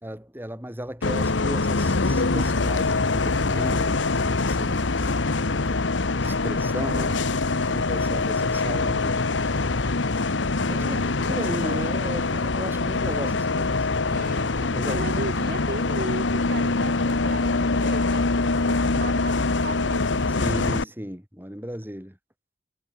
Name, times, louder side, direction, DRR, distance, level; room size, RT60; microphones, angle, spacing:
voice 1, 0.0-5.2 6.2-7.2 7.7-9.3 10.7-14.1 14.6-15.2 20.4-22.2, equal, 10° right, 3.7 m, -35 dB
Bus, 1.0-20.8, left 3 dB, 90° left, 1.2 m, -24 dB
voice 2, 10.8-11.4 14.1-14.5 14.9-19.3 19.6-20.5, right 2 dB, 55° right, 3.6 m, -36 dB
head